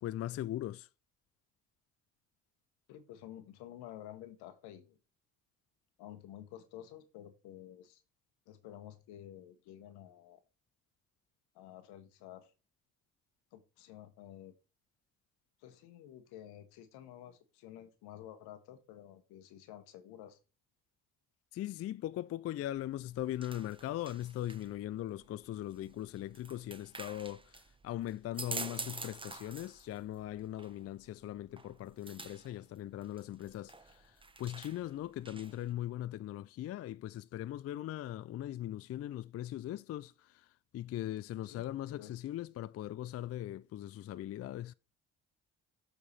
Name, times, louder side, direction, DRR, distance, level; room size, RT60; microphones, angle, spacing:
voice 1, 0.0-0.9 21.5-27.5 27.8-34.1 34.4-40.4 40.7-44.7, left 13 dB, 40° left, 0.4 m, -40 dB
voice 2, 2.9-5.0 6.0-8.0 8.5-10.4 11.5-12.5 13.5-14.5 15.6-20.4 41.4-41.6 41.9-42.2, left 11 dB, 75° left, 1.2 m, -51 dB
sound 1, 22.7-35.7, right 3 dB, 15° right, 0.8 m, -48 dB
7.2 x 4.6 x 4.2 m
hypercardioid pair, 55°, 39 cm